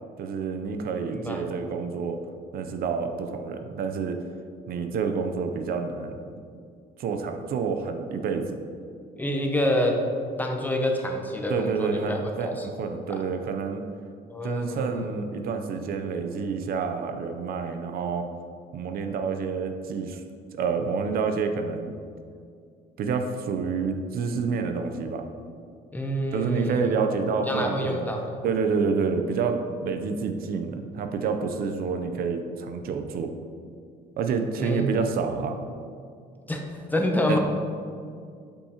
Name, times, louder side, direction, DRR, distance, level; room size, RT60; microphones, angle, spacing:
voice 1, 0.2-2.2 2.5-4.2 4.7-6.2 7.0-8.6 11.5-13.8 14.4-18.3 18.7-20.2 20.5-21.9 23.0-25.2 26.3-28.1 28.4-33.3 34.2-35.6 37.3-37.4, right 5 dB, 60° right, 6 dB, 0.6 m, -28 dB
voice 2, 1.1-1.5 9.2-9.9 10.4-12.7 14.3-15.1 25.9-26.9 27.5-28.4 34.6-35.3 36.5-36.6 36.9-37.4, left 1 dB, 10° left, 1 dB, 0.8 m, -27 dB
8.3 x 5.5 x 2.9 m, 2.3 s
cardioid pair, 110°, 17 cm